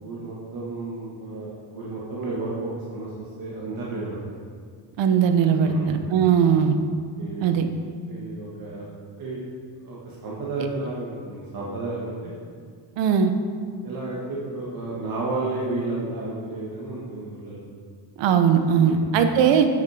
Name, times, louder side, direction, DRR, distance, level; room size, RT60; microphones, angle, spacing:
voice 1, 0.0-4.2 5.6-6.5 7.2-7.5 8.1-8.9 9.2-9.4 9.8-12.3 13.8-17.6 18.8-19.2, right 2 dB, 50° right, -5 dB, 1.8 m, -32 dB
voice 2, 5.0-6.8 7.4-7.7 13.0-13.3 18.2-19.7, right 7 dB, 80° right, 7 dB, 1.0 m, -19 dB
8.4 x 8.0 x 5.0 m, 2.1 s
cardioid pair, 130°, 43 cm